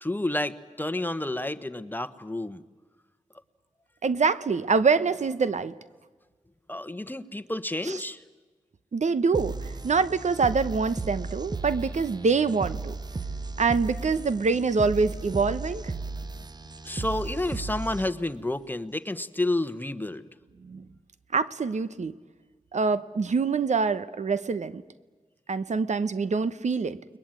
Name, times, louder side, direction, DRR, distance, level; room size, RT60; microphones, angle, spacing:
voice 1, 0.0-2.6 6.7-8.2 16.8-20.3, left 1 dB, 15° left, 11 dB, 1.2 m, -30 dB
voice 2, 4.0-5.7 7.9-8.0 8.9-12.9 13.6-15.9 20.6-20.9 21.3-22.1 22.7-24.8 25.5-27.0, right 4 dB, 75° right, 14 dB, 1.0 m, -25 dB
sound 1, 9.3-18.3, right 3 dB, 35° right, 0.9 m, -35 dB
29.5 x 21.5 x 9.0 m, 1.3 s
cardioid pair, 60°, 12 cm